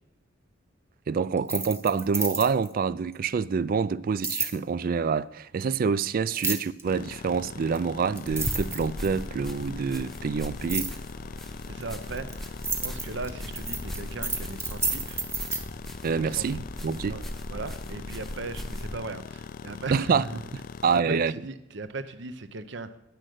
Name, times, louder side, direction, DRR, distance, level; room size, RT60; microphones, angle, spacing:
voice 1, 1.1-10.9 16.0-17.2 19.9-20.2 20.8-21.3, right 5 dB, 45° right, 0.3 m, -26 dB
sound 1, 1.4-2.7 4.2-4.6 6.4-6.8 7.8-7.9 8.2-9.3 10.7-11.0 11.8-15.6, right 4 dB, 15° right, 1.0 m, -30 dB
sound 2, 6.8-21.0, left 5 dB, 45° left, 0.3 m, -42 dB
sound 3, 8.3-19.0, equal, ahead, 0.6 m, -38 dB
voice 2, 11.7-12.6 12.8-15.2 16.2-16.6 17.1-17.2 17.5-20.4 20.9-23.0, right 3 dB, 60° right, 0.8 m, -38 dB
10.5 x 6.5 x 7.7 m
head